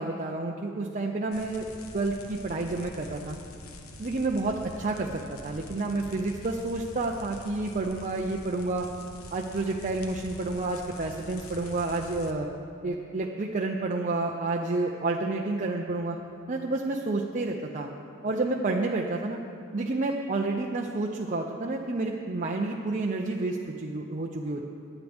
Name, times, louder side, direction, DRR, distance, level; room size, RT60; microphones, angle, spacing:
voice 1, 0.0-1.7 1.9-3.4 4.0-8.9 9.3-12.5 12.8-16.2 16.5-17.9 18.2-19.4 19.7-24.6, right 2 dB, 35° right, 0 dB, 0.6 m, -30 dB
sound 1, 1.3-12.3, left 2 dB, 80° left, 1.1 m, -45 dB
20.5 x 9.2 x 3.5 m, 2.5 s
head